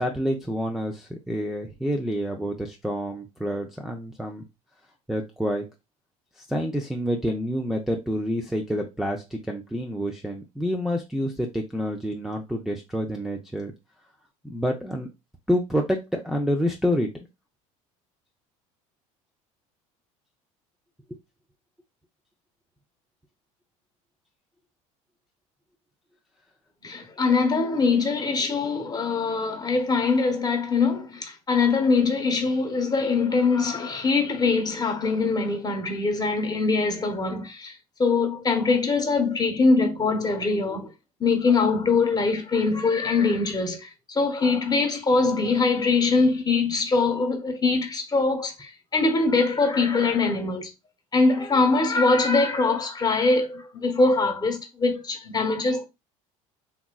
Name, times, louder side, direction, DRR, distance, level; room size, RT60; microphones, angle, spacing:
voice 1, 0.0-4.4 5.1-5.7 6.4-13.7 14.4-15.1 15.5-17.1, equal, ahead, 0.5 m, -28 dB
voice 2, 26.8-37.7 38.0-40.9 41.2-50.7 51.1-55.8, left 4 dB, 25° left, 1.1 m, -23 dB
3.4 x 3.0 x 2.3 m
hypercardioid pair, 85°, 17 cm